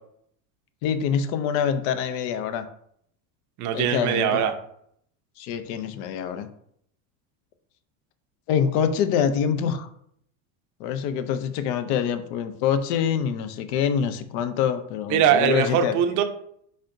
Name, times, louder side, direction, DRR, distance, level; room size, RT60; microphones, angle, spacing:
voice 1, 0.8-2.6 3.7-4.5 5.4-6.5 8.5-9.9 10.8-16.0, left 8 dB, 60° left, 9 dB, 0.6 m, -25 dB
voice 2, 3.6-4.5 15.1-16.2, right 9 dB, 40° right, 6 dB, 0.6 m, -21 dB
4.9 x 4.2 x 2.6 m, 0.68 s
supercardioid pair, 130°, 45 cm